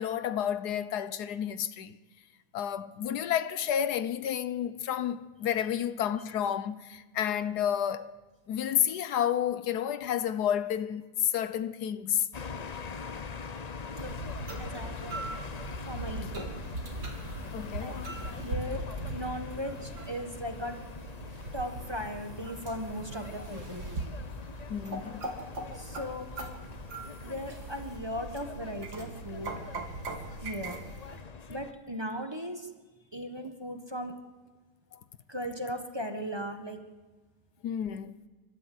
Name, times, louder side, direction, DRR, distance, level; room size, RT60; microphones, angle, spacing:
voice 1, 0.0-2.0 2.5-8.1 8.5-12.3 17.5-18.0 24.7-25.2 37.6-38.1, left 9 dB, 80° left, 1.4 m, -30 dB
sound 1, 12.3-31.7, left 5 dB, 40° left, 0.6 m, -43 dB
sound 2, 14.0-31.2, right 2 dB, 90° right, 3.1 m, -40 dB
voice 2, 14.6-15.3 15.8-16.5 17.8-18.1 18.4-20.8 21.5-23.8 25.7-26.3 27.2-29.6 30.4-30.8 31.5-32.7 33.1-34.1 35.3-36.8, equal, 15° right, 1.4 m, -37 dB
30.0 x 12.5 x 7.9 m
omnidirectional pair, 1.7 m